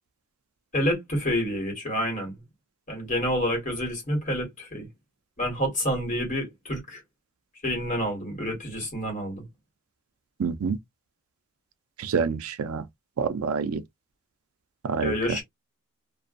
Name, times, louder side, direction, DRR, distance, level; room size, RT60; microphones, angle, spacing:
voice 1, 0.7-2.4 2.9-4.9 5.4-7.0 7.6-9.4 15.0-15.4, equal, 35° left, 1.5 m, -28 dB
voice 2, 10.4-10.8 12.0-12.8 13.2-13.8 14.8-15.1, right 5 dB, 75° right, 0.4 m, -27 dB
2.5 x 2.2 x 2.4 m
head